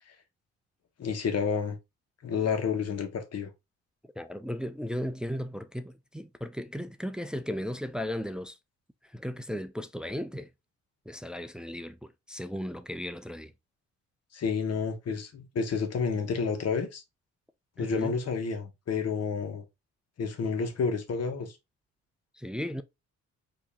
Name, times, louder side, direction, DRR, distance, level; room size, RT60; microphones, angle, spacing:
voice 1, 1.0-1.8 2.2-3.5 14.3-17.0 17.8-19.6 20.2-21.6, left 5 dB, 55° left, 1.4 m, -30 dB
voice 2, 4.2-8.6 9.1-10.5 11.1-13.5 17.8-18.2 22.4-22.8, equal, 5° right, 0.4 m, -36 dB
4.9 x 3.0 x 3.4 m
cardioid pair, 90°, 30 cm